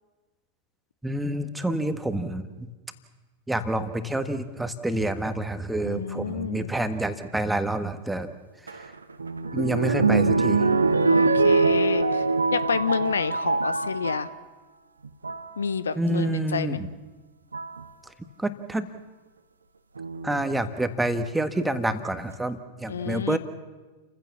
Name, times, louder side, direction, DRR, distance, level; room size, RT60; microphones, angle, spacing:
voice 1, 1.0-2.7 3.5-8.3 8.7-8.8 9.5-10.6 16.0-16.9 18.4-18.9 20.2-23.4, right 1 dB, 5° right, 10 dB, 1.6 m, -28 dB
voice 2, 5.8-6.7 11.1-12.2 12.5-14.3 15.6-16.8 22.9-23.4, left 6 dB, 70° left, 15 dB, 0.8 m, -29 dB
sound 1, 8.7-14.3 15.0-15.5 16.7-16.8 17.5-17.8 20.0-20.6 21.3-21.4 21.6-21.7, right 3 dB, 75° right, 1.1 m, -23 dB
30.0 x 15.5 x 7.1 m, 1.2 s
figure-of-eight pair, 90°, 0 cm